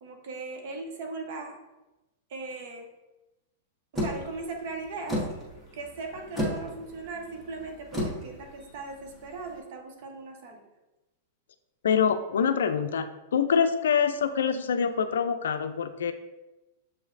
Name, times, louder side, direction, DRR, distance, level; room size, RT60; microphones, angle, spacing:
voice 1, 0.0-1.6 2.3-2.9 3.9-5.2 5.7-10.7, right 3 dB, 60° right, 3 dB, 0.9 m, -38 dB
sound 1, 4.0-9.6, equal, ahead, 1.2 m, -34 dB
voice 2, 11.8-13.1 13.3-16.1, left 7 dB, 85° left, 10 dB, 0.3 m, -25 dB
6.9 x 3.1 x 2.5 m, 1.0 s
hypercardioid pair, 125°, 0 cm